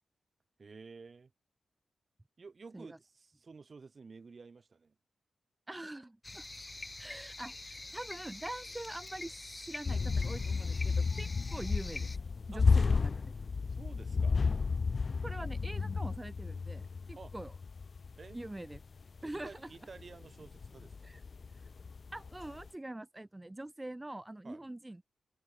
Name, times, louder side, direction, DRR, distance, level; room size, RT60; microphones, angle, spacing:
voice 1, 0.6-1.3 2.4-5.0 12.5-12.6 13.7-14.4 17.1-17.3 18.2-18.4 19.2-21.1 24.4-24.6, right 4 dB, 50° right, 3.6 m, -52 dB
voice 2, 5.7-6.4 7.0-12.1 12.5-13.4 15.2-17.5 18.3-18.8 19.2-19.7 21.1-21.2 22.1-25.0, right 1 dB, 15° right, 1.2 m, -44 dB
sound 1, 6.2-12.2, left 2 dB, 25° left, 3.9 m, -46 dB
sound 2, 9.8-19.6 20.0-22.7, left 4 dB, 50° left, 0.3 m, -32 dB
cardioid pair, 60°, 0 cm